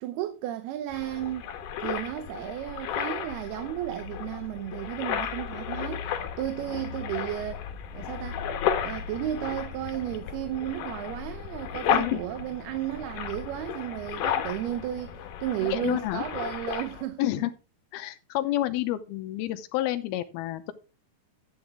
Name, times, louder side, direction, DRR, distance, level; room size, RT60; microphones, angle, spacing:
voice 1, 0.0-1.5 1.8-7.6 7.9-8.5 8.8-17.5, right 13 dB, 90° right, 2.8 m, -33 dB
sound 1, 0.9-17.0, left 8 dB, 65° left, 2.4 m, -33 dB
voice 2, 15.7-16.2 17.2-17.5 17.9-20.7, left 15 dB, 85° left, 2.7 m, -29 dB
12.5 x 8.9 x 3.6 m
omnidirectional pair, 4.4 m